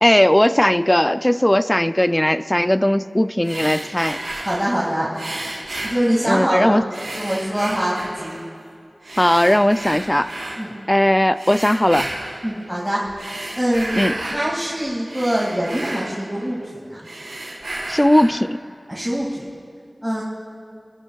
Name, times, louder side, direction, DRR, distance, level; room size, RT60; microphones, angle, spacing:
voice 1, 0.0-4.2 6.3-6.8 9.2-10.3 10.9-12.1 13.9-14.1 17.9-18.6, left 1 dB, 15° left, 13 dB, 0.4 m, -17 dB
sound 1, 3.4-4.7 5.1-6.6 6.9-8.5 9.0-10.6 11.3-12.5 13.0-14.4 14.8-16.7 17.0-18.4, right 1 dB, 85° right, 3.9 m, -32 dB
voice 2, 4.4-5.1 5.8-6.8 7.2-8.4 10.6-10.7 12.4-13.0 13.6-16.6 16.9-17.0 18.9-19.4 20.0-20.2, equal, 10° right, -6 dB, 2.2 m, -23 dB
26.0 x 13.0 x 2.3 m, 2.4 s
wide cardioid pair, 45°, 0 cm